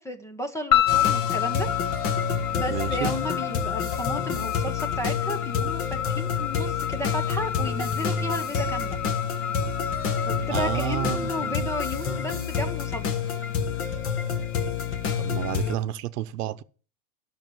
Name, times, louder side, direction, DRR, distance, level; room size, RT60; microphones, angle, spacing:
voice 1, 0.0-1.7 2.5-9.0 10.3-13.1, equal, 5° left, 0.9 m, -33 dB
sound 1, 0.7-13.0, left 11 dB, 90° left, 4.6 m, -30 dB
sound 2, 0.9-15.8, left 6 dB, 30° left, 1.4 m, -28 dB
voice 2, 2.7-3.1 10.5-11.7 15.2-16.6, right 14 dB, 80° right, 1.0 m, -31 dB
12.5 x 6.4 x 8.0 m
supercardioid pair, 155°, 46 cm